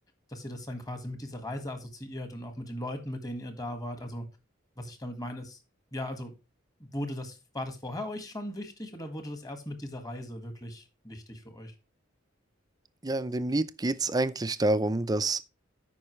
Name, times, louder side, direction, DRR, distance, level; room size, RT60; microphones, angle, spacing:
voice 1, 0.3-4.2 4.8-5.6 5.9-6.3 6.8-11.7, left 1 dB, 20° left, 1.7 m, -38 dB
voice 2, 13.0-15.4, right 2 dB, 20° right, 0.5 m, -27 dB
13.0 x 5.4 x 3.1 m
head